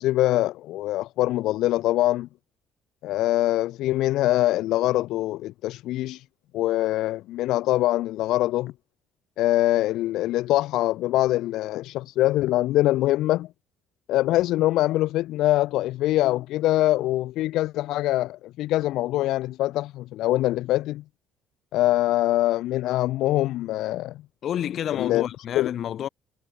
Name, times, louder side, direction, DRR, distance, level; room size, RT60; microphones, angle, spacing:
voice 1, 0.0-2.3 3.0-6.2 6.5-8.7 9.4-13.5 14.1-21.0 21.7-24.2 25.0-25.2 25.6-25.7, left 15 dB, 75° left, 0.4 m, -23 dB
voice 2, 24.4-26.1, left 10 dB, 55° left, 2.6 m, -29 dB
cardioid pair, 110°, 0 cm